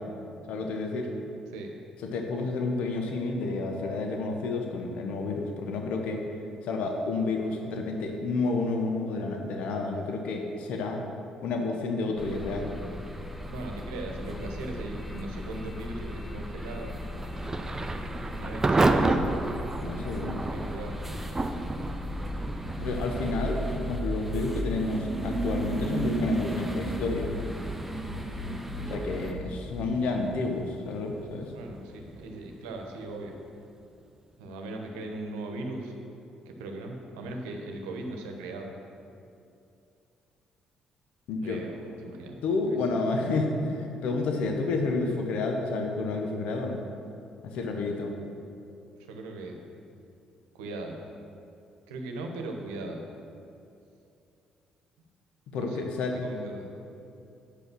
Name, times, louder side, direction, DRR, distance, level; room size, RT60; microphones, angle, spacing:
voice 1, 0.5-1.1 2.0-6.2 6.6-11.0 11.4-12.7 19.8-20.4 22.8-27.3 28.9-31.5 41.3-41.6 42.4-46.8 47.4-48.1 55.5-56.2, left 3 dB, 70° left, 3 dB, 0.8 m, -30 dB
sound 1, 12.2-29.3, right 1 dB, 10° right, 1.1 m, -35 dB
voice 2, 13.5-17.0 18.3-19.2 20.5-21.0 31.5-33.3 34.4-35.9 36.5-38.7 41.4-42.4 42.7-42.8 47.7-47.9 49.1-49.6 50.5-51.0 51.9-53.0 55.5-56.7, right 2 dB, 85° right, 2 dB, 1.0 m, -38 dB
Thunder / Rain, 17.2-33.9, right 2 dB, 25° right, 0.6 m, -33 dB
8.3 x 5.4 x 6.1 m, 2.6 s
hypercardioid pair, 55°, 2 cm